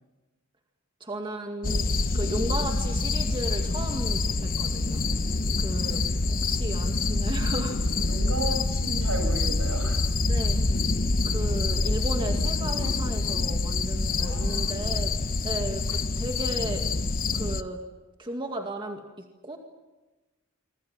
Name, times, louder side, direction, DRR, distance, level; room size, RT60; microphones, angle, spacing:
voice 1, 1.0-5.3 5.6-8.0 10.3-10.6 11.2-15.1 15.4-16.9 17.3-17.8 18.2-19.6, right 1 dB, 25° right, 3 dB, 2.1 m, -35 dB
sound 1, 1.6-17.6, left 3 dB, 40° left, 1.0 m, -26 dB
voice 2, 5.8-6.2 8.1-10.1 14.1-14.9, right 2 dB, 75° right, 5 dB, 8.0 m, -35 dB
26.5 x 25.5 x 7.3 m, 1.1 s
head